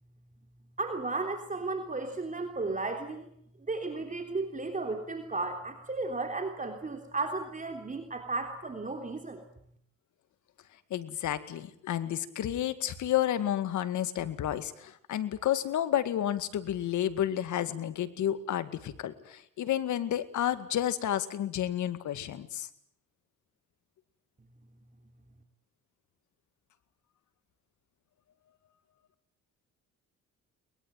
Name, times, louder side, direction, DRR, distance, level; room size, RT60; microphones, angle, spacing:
voice 1, 0.8-3.3 3.7-9.4, right 3 dB, 25° right, 5 dB, 3.3 m, -34 dB
voice 2, 10.9-22.7, left 11 dB, 75° left, 12 dB, 2.1 m, -31 dB
22.5 x 21.5 x 9.0 m, 0.69 s
cardioid pair, 90°, 30 cm